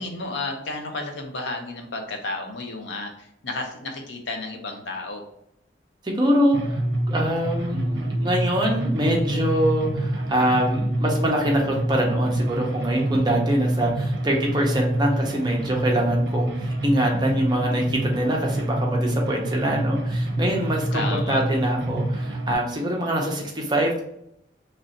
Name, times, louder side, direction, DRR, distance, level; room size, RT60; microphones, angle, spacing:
voice 1, 0.0-5.2 20.9-21.4, left 2 dB, 75° left, 3 dB, 0.7 m, -32 dB
voice 2, 6.0-6.8 7.1-24.0, right 1 dB, 20° right, 0 dB, 0.6 m, -24 dB
sound 1, 6.5-22.5, right 1 dB, 70° right, 0.6 m, -26 dB
3.1 x 2.6 x 4.0 m, 0.74 s
head